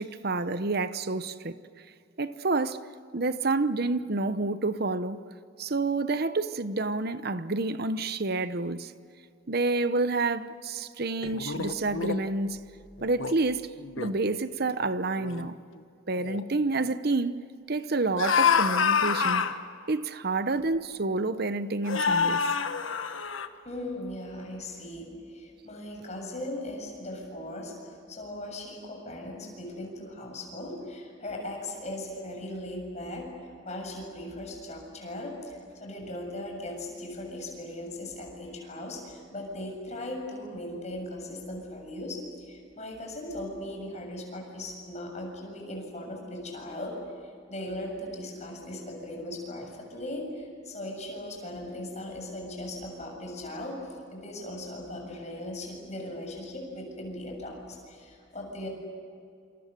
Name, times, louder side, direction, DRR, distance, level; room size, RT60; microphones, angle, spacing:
voice 1, 0.0-1.6 2.2-2.8 3.1-5.2 5.6-8.9 9.5-12.6 13.0-13.7 14.0-15.5 16.1-17.4 17.7-19.5 19.9-22.4, right 3 dB, 50° right, 1.0 m, -28 dB
sound 1, 11.2-12.2 13.0-13.3 13.8-14.2 14.8-14.9 15.2-15.5 16.2-16.4 18.2-19.6 20.6-20.7 21.8-23.5, left 6 dB, 80° left, 1.4 m, -27 dB
voice 2, 23.6-58.7, left 1 dB, 35° left, 7.3 m, -38 dB
28.0 x 28.0 x 6.8 m
head